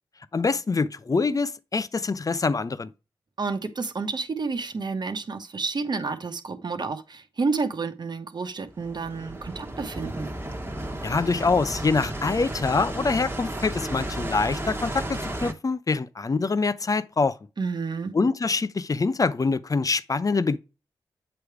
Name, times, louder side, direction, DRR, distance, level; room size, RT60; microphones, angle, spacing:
voice 1, 0.3-2.9 11.0-17.4 18.1-20.6, left 4 dB, 40° left, 0.7 m, -25 dB
voice 2, 3.4-10.3 17.6-18.1, right 4 dB, 50° right, 1.2 m, -30 dB
sound 1, 8.7-15.5, right 1 dB, 25° right, 1.4 m, -33 dB
8.0 x 3.3 x 4.7 m
supercardioid pair, 40°, 9 cm